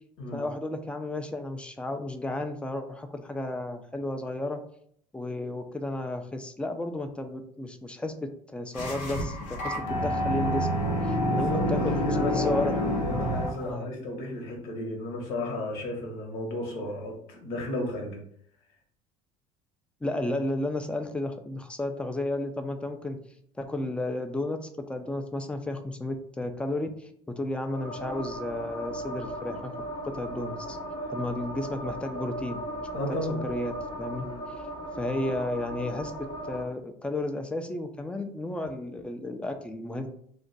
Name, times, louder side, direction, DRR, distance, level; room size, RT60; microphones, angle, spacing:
voice 1, 0.3-4.6 5.1-12.8 13.6-13.9 20.0-23.2 23.6-29.7 30.0-30.8 31.1-32.9 33.4-33.7 34.0-34.3 34.6-34.7 35.0-40.1, left 1 dB, 5° left, 7 dB, 0.4 m, -33 dB
sound 1, 8.7-13.7, left 1 dB, 90° left, 0.7 m, -28 dB
voice 2, 11.3-18.2 31.0-31.1 32.9-33.4 34.2-34.4, left 1 dB, 75° left, 0 dB, 1.0 m, -34 dB
sound 2, 27.7-36.6, right 1 dB, 25° left, 0.8 m, -37 dB
2.5 x 2.2 x 3.9 m, 0.65 s
supercardioid pair, 90°, 17 cm